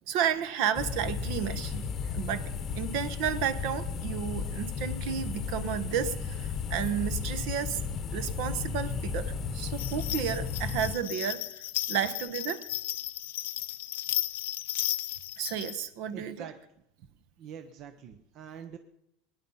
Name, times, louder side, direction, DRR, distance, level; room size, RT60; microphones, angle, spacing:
voice 1, 0.1-7.8 8.1-12.7 15.4-16.5, right 8 dB, 50° right, 14 dB, 1.0 m, -32 dB
sound 1, 0.7-11.0, left 6 dB, 25° left, 1.0 m, -34 dB
sound 2, 9.8-15.8, left 14 dB, 85° left, 0.7 m, -34 dB
voice 2, 16.1-16.6 17.0-18.8, right 8 dB, 35° right, 8 dB, 0.7 m, -46 dB
21.5 x 9.7 x 5.6 m, 0.84 s
supercardioid pair, 165°, 0 cm